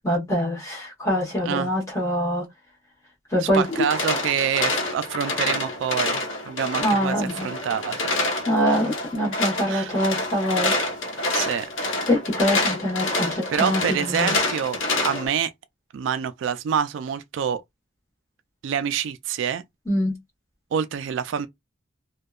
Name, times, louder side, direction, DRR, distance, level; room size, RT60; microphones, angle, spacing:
voice 1, 0.0-2.4 3.3-3.8 6.8-7.5 8.5-10.7 12.1-14.3 19.9-20.1, equal, 15° left, 1.1 m, -24 dB
voice 2, 3.4-8.0 8.3-8.4 9.7-9.9 11.3-11.7 13.5-15.5 15.9-17.6 18.6-19.6 20.7-21.5, right 8 dB, 70° right, 0.3 m, -26 dB
sound 1, 3.6-15.3, left 2 dB, 90° left, 0.8 m, -27 dB
2.7 x 2.2 x 2.3 m
head